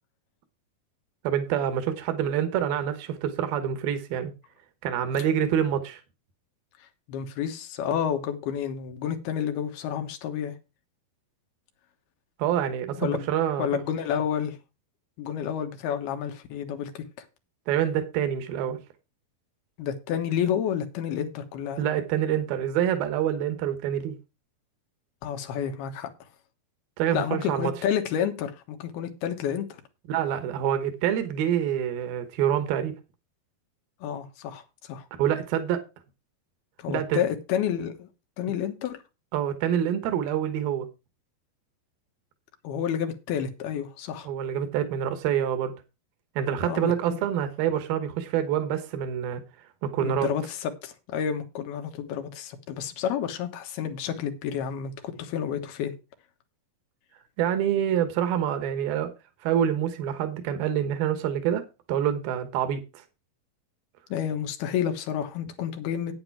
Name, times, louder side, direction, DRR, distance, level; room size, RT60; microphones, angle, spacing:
voice 1, 1.2-4.3 4.8-6.0 12.4-13.7 17.7-18.8 21.8-24.2 27.0-27.7 30.1-32.9 35.2-35.8 36.9-37.2 39.3-40.9 44.2-45.7 46.4-49.4 49.8-50.3 57.4-59.1 59.4-63.0, right 9 dB, 75° right, 3.0 m, -26 dB
voice 2, 6.8-10.5 13.0-13.3 13.6-14.6 15.2-17.3 19.8-21.8 25.2-26.1 27.1-29.7 34.0-35.1 36.8-38.1 38.4-39.0 42.6-44.3 46.6-47.2 50.0-55.9 64.1-66.1, left 9 dB, 90° left, 3.3 m, -30 dB
9.1 x 8.9 x 4.6 m
omnidirectional pair, 4.3 m